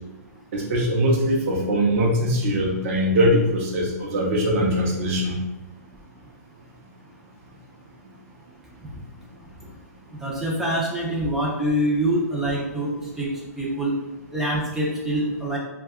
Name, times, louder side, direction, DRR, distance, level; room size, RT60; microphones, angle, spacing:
voice 1, 0.5-5.4, equal, 50° right, -2 dB, 0.7 m, -21 dB
voice 2, 10.1-13.3 13.6-13.9 14.3-15.6, right 1 dB, 5° right, -5 dB, 0.5 m, -25 dB
2.7 x 2.3 x 3.5 m, 1.0 s
hypercardioid pair, 140°, 9 cm